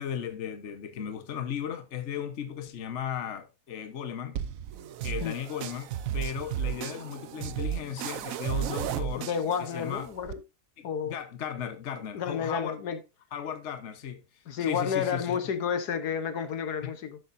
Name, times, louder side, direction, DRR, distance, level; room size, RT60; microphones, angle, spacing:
voice 1, 0.0-4.4 5.0-9.3 9.6-10.1 10.8-12.8 13.3-14.2 14.6-15.4 16.8-16.9, left 9 dB, 50° left, 1.3 m, -36 dB
sound 1, 4.3-10.3, right 10 dB, 65° right, 1.0 m, -34 dB
voice 2, 9.1-10.4 10.8-11.2 12.1-13.0 14.5-17.2, left 7 dB, 85° left, 1.6 m, -31 dB
11.5 x 7.9 x 2.6 m
omnidirectional pair, 1.7 m